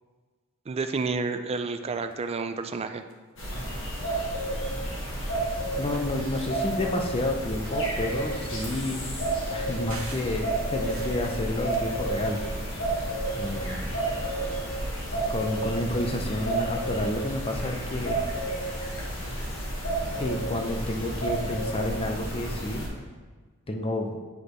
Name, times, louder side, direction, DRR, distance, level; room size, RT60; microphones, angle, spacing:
voice 1, 0.7-3.0, right 4 dB, 30° right, 8 dB, 0.3 m, -30 dB
sound 1, 1.9-2.2 2.7-2.8 3.1-3.4 4.6-4.7 5.3-5.4 5.7-7.3 7.6-9.3 9.9-12.7 13.0-14.1 15.0-15.1 15.4-15.5 15.7-15.8, right 3 dB, 65° right, 1.0 m, -48 dB
sound 2, 3.4-22.9, right 1 dB, 65° left, 1.6 m, -31 dB
voice 2, 5.8-9.1 9.5-12.4 13.3-13.9 15.1-18.2 20.2-22.9 23.7-24.2, left 1 dB, 25° left, 3 dB, 0.6 m, -30 dB
8.3 x 5.0 x 3.1 m, 1.4 s
head